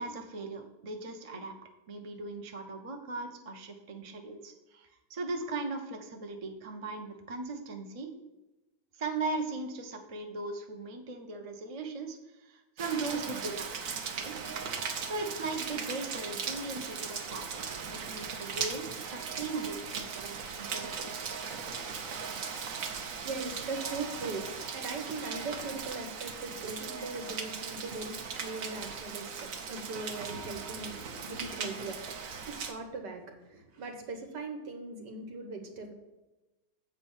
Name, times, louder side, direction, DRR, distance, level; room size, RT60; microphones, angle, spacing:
voice 1, 0.0-1.6 1.9-8.1 8.9-13.7 14.1-14.4 15.0-21.3, right 3 dB, 30° right, 4 dB, 0.6 m, -38 dB
Rain, 12.8-32.7, right 6 dB, 55° right, 1.1 m, -38 dB
voice 2, 23.2-35.9, right 3 dB, 75° right, 4 dB, 1.8 m, -40 dB
7.8 x 4.8 x 7.2 m, 1.0 s
omnidirectional pair, 1.9 m